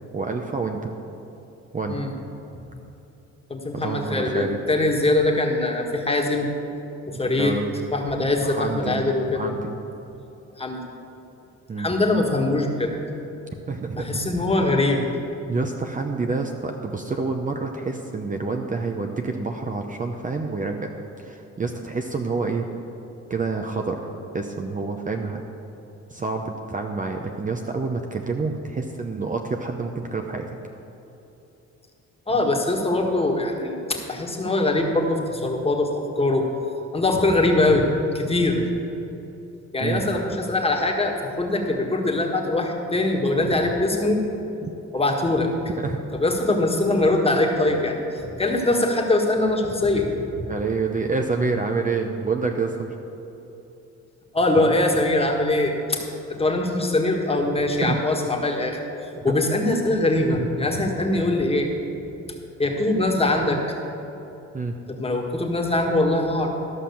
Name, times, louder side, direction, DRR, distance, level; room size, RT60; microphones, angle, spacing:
voice 1, 0.1-0.9 1.7-2.0 3.7-4.6 7.4-7.7 8.4-9.1 9.3-9.8 11.7-11.9 13.7-14.2 15.5-20.9 21.2-22.7 23.3-24.1 24.3-25.4 26.1-30.6 39.8-40.0 43.4-43.5 44.6-44.7 45.8-46.0 50.5-52.9 54.6-54.8 57.8-58.0 59.3-59.4 64.5-64.7, right 4 dB, 25° right, 3 dB, 0.7 m, -28 dB
voice 2, 3.5-6.5 7.1-7.6 7.9-9.5 10.6-10.8 11.8-12.9 14.0-15.0 32.3-36.5 36.9-37.9 38.1-38.7 39.7-44.2 44.9-45.5 46.2-50.4 54.3-56.0 56.3-58.8 59.2-61.7 62.6-63.6 64.9-66.5, left 2 dB, 20° left, 1 dB, 1.6 m, -22 dB
13.5 x 5.8 x 7.0 m, 2.9 s
cardioid pair, 90°, 30 cm